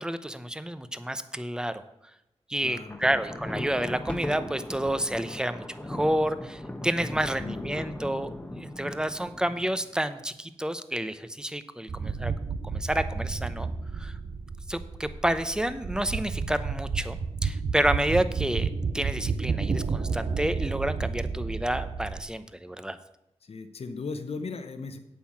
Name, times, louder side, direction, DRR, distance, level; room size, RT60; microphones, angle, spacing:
voice 1, 0.0-1.8 2.5-12.3 12.6-13.7 13.9-14.1 14.7-18.7 18.9-23.0, right 1 dB, 5° right, 12 dB, 0.7 m, -29 dB
voice 2, 2.6-3.2 7.4-7.8 23.4-25.0, left 4 dB, 65° left, 8 dB, 0.8 m, -37 dB
Thunder, 2.7-10.0, left 1 dB, 10° left, 1.1 m, -38 dB
Metal Board Wobble Big, 11.9-22.2, right 5 dB, 65° right, 0.6 m, -31 dB
8.5 x 5.8 x 7.3 m, 0.86 s
cardioid pair, 65°, 11 cm